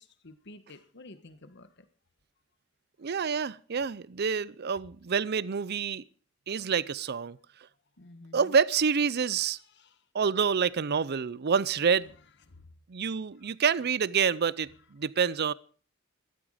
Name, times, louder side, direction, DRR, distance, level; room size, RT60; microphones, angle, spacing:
voice 1, 0.0-1.9 8.0-8.5 9.7-9.9 12.5-12.7, left 2 dB, 60° left, 1.4 m, -51 dB
voice 2, 3.0-6.0 6.5-7.4 8.3-9.6 10.1-12.1 12.9-15.5, right 6 dB, 55° right, 0.5 m, -27 dB
14.0 x 13.0 x 5.0 m
head